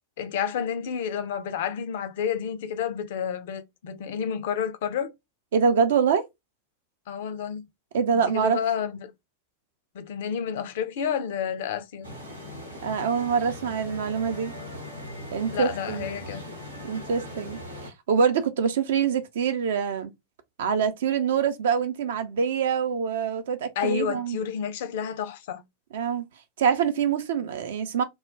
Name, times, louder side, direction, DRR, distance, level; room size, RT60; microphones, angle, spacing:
voice 1, 0.2-5.1 7.1-7.6 8.1-9.1 9.9-12.1 15.5-16.4 23.8-25.6, left 7 dB, 55° left, 0.4 m, -30 dB
voice 2, 5.5-6.2 7.9-8.6 12.8-14.5 15.3-16.1 16.8-20.1 20.6-24.4 25.9-26.2 26.6-28.0, right 6 dB, 60° right, 0.5 m, -25 dB
sound 1, 12.0-17.9, left 1 dB, 85° right, 0.8 m, -39 dB
2.2 x 2.1 x 3.3 m
figure-of-eight pair, 90°, 0 cm